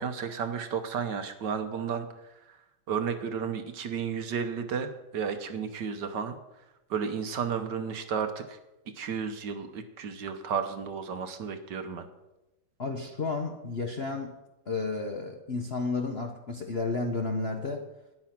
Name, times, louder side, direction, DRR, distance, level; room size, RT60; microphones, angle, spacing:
voice 1, 0.0-2.0 2.9-6.3 6.9-8.6 9.0-12.1, right 6 dB, 60° right, 8 dB, 1.5 m, -32 dB
voice 2, 12.8-14.3 14.7-17.8, left 3 dB, 45° left, 3 dB, 0.9 m, -32 dB
13.5 x 10.5 x 5.9 m, 0.98 s
omnidirectional pair, 2.3 m